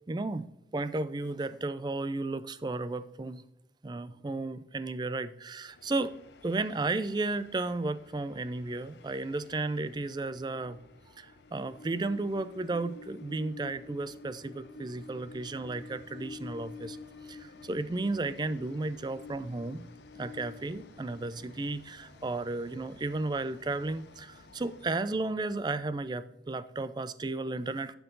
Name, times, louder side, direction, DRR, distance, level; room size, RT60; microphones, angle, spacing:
voice 1, 0.1-0.5 0.7-3.4 3.8-6.1 6.4-10.8 11.2-17.0 17.3-19.8 20.2-27.9, right 2 dB, 25° right, 14 dB, 0.4 m, -33 dB
Train, 5.7-25.2, left 3 dB, 75° left, 0.7 m, -50 dB
11.5 x 4.7 x 3.8 m, 0.83 s
head